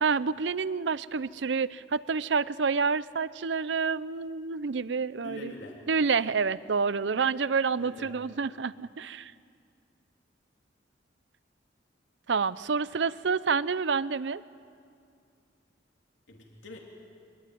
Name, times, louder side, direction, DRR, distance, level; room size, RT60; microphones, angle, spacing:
voice 1, 0.0-5.5 5.9-9.3 12.3-14.4, right 5 dB, 75° right, 17 dB, 0.6 m, -28 dB
voice 2, 5.2-5.8 7.7-8.2 16.3-16.8, left 1 dB, 90° left, 0 dB, 3.2 m, -44 dB
25.0 x 21.0 x 9.4 m, 2.3 s
head